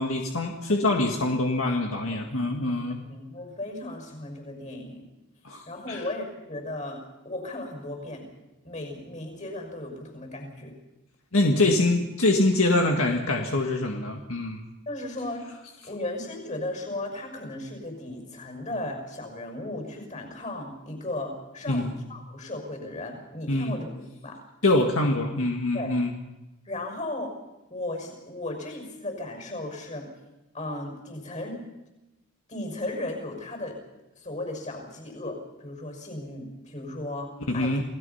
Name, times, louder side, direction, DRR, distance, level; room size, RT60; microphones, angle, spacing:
voice 1, 0.0-3.0 5.4-6.0 11.3-14.6 21.7-21.9 23.5-23.7 24.6-26.1 37.5-37.8, left 2 dB, 70° left, 1 dB, 1.9 m, -24 dB
voice 2, 3.1-5.0 5.7-8.3 8.6-10.8 11.5-11.7 14.9-15.6 15.8-24.4 25.7-25.9 26.6-27.3 27.7-30.1 30.5-31.6 32.5-33.8 34.2-37.8, left 1 dB, 30° left, 3 dB, 6.1 m, -36 dB
28.5 x 18.0 x 5.8 m, 0.99 s
head